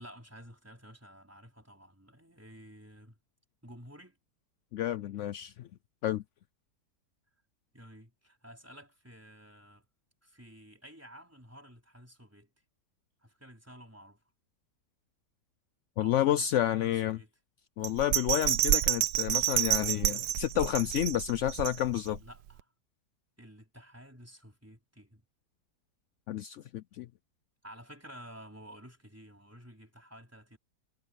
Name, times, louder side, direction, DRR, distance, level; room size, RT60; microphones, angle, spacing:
voice 1, 0.0-3.2 3.6-4.2 7.7-9.9 10.2-12.5 13.2-14.2 16.0-17.3 22.2-22.7 23.4-25.2 27.6-30.6, equal, 10° right, 4.2 m, -52 dB
voice 2, 4.7-5.7 6.0-6.2 16.0-17.2 17.8-22.2 26.3-27.1, left 12 dB, 75° left, 0.6 m, -30 dB
Bell, 17.8-22.2 22.6-22.7, right 13 dB, 80° right, 1.3 m, -29 dB
omnidirectional pair, 1.8 m